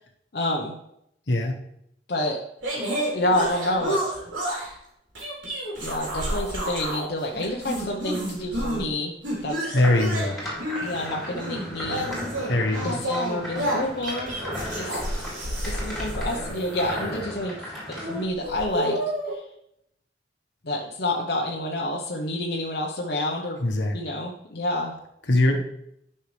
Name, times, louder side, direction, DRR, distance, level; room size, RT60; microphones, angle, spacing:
voice 1, 0.3-0.8 2.1-2.4 3.1-4.0 5.8-9.1 9.4-9.6 10.8-12.1 12.8-14.3 14.8-15.0 15.6-19.0 19.3-19.5 20.6-23.6 23.9-24.9, left 1 dB, 55° left, -1 dB, 0.9 m, -28 dB
voice 2, 1.3-1.6 9.7-10.4 12.5-13.0 23.6-23.9 25.3-25.6, left 2 dB, 75° left, 2 dB, 1.3 m, -22 dB
sound 1, 2.6-4.7 5.2-7.1 7.3-8.9 9.2-17.2 18.0-19.3, equal, 85° right, 3.8 m, -30 dB
sound 2, 9.8-18.2, equal, ahead, 2.8 m, -36 dB
11.5 x 5.6 x 3.3 m, 0.76 s
head